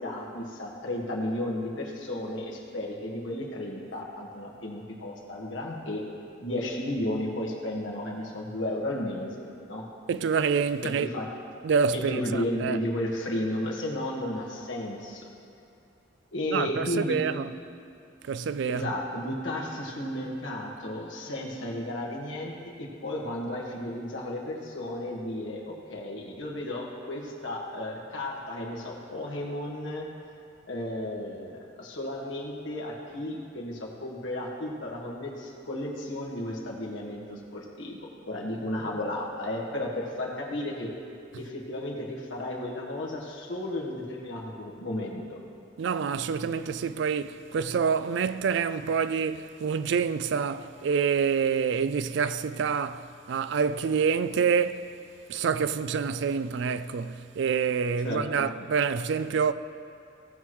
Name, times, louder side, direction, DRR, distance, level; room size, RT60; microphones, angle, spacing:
voice 1, 0.0-6.0 6.4-9.8 10.8-11.3 11.9-15.3 16.3-17.2 18.6-30.0 30.7-40.9 41.3-45.4 58.0-58.5, left 1 dB, 80° left, 1.6 m, -33 dB
voice 2, 10.1-11.1 11.6-12.8 16.5-17.5 18.3-18.9 45.8-54.9 55.3-59.5, right 6 dB, 65° right, 0.3 m, -27 dB
17.5 x 6.2 x 3.1 m
head